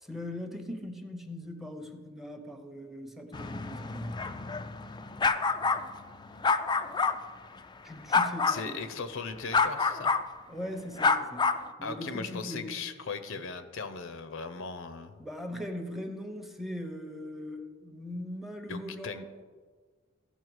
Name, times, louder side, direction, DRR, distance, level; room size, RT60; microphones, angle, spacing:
voice 1, 0.0-4.2 7.8-8.8 10.5-12.8 15.2-19.4, left 1 dB, ahead, 6 dB, 0.8 m, -40 dB
sound 1, 3.3-7.2 8.1-8.6 9.5-10.2 11.0-11.6, left 4 dB, 20° left, 0.4 m, -27 dB
voice 2, 8.5-10.1 11.8-15.2 18.7-19.3, left 4 dB, 65° left, 10 dB, 0.7 m, -38 dB
15.0 x 5.7 x 4.7 m, 1.5 s
head